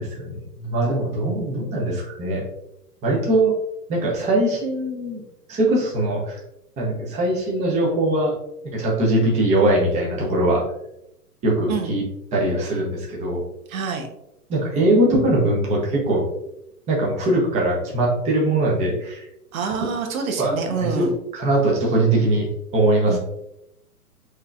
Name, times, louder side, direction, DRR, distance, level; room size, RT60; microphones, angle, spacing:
voice 1, 0.0-2.4 3.0-3.5 3.9-5.2 5.5-6.4 6.8-8.3 8.6-10.6 11.4-12.0 12.3-13.4 14.5-16.2 16.9-19.3 20.4-23.2, right 1 dB, 15° right, -3 dB, 0.9 m, -21 dB
voice 2, 13.7-14.1 19.5-21.1 23.1-23.2, right 5 dB, 60° right, 3 dB, 1.0 m, -26 dB
6.4 x 3.0 x 2.4 m, 0.81 s
hypercardioid pair, 140°, 47 cm